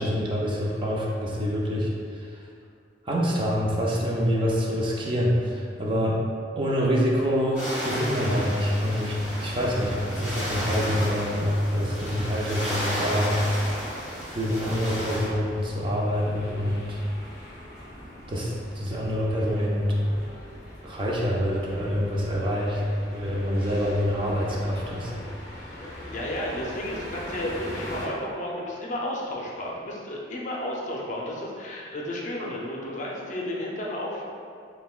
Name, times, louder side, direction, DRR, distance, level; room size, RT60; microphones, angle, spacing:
voice 1, 0.0-2.4 3.1-6.2 6.6-13.4 14.3-17.0 18.3-19.9 20.8-22.8 23.1-25.1, equal, 30° right, -4 dB, 0.4 m, -26 dB
sound 1, 7.5-15.3, equal, 10° right, 1.4 m, -33 dB
sound 2, 9.1-28.1, left 1 dB, 15° left, 0.9 m, -41 dB
voice 2, 25.8-34.2, left 1 dB, 45° left, -2 dB, 0.5 m, -32 dB
5.6 x 2.2 x 2.4 m, 2.3 s
head